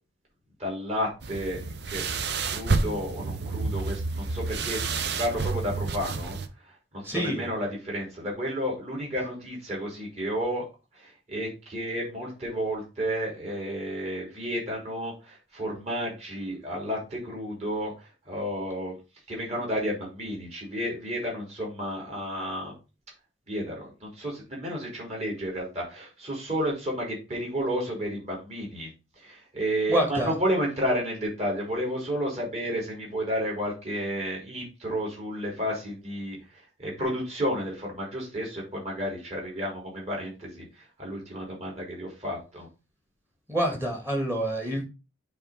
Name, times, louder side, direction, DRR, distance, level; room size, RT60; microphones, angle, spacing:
voice 1, 0.6-1.6 1.9-2.0 2.5-4.8 5.2-6.4 6.6-10.6 10.9-19.0 19.3-22.7 23.5-28.9 29.2-42.7, equal, 35° right, -2 dB, 3.8 m, -31 dB
sound 1, 1.2-6.5, right 4 dB, 55° right, 0.7 m, -30 dB
voice 2, 7.0-7.5 29.9-30.3 43.5-44.8, equal, 10° right, 2 dB, 2.0 m, -27 dB
7.7 x 3.8 x 5.0 m, 0.29 s
head